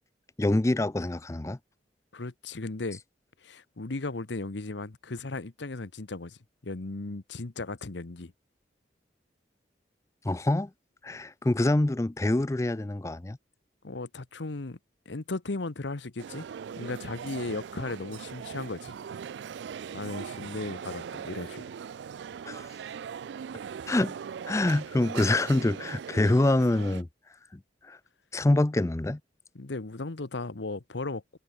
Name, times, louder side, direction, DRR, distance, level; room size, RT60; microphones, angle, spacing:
voice 1, 0.4-1.6 10.2-10.7 11.0-13.4 22.5-22.7 23.9-24.1 24.5-27.1 27.9-28.0 28.3-29.2, left 1 dB, 15° left, 0.4 m, -25 dB
voice 2, 2.1-3.0 3.4-6.4 6.6-8.3 13.8-14.8 15.1-16.4 16.8-18.9 19.9-21.6 29.5-31.4, left 3 dB, 80° left, 1.0 m, -36 dB
sound 1, 16.2-27.0, right 7 dB, 75° right, 0.3 m, -40 dB
head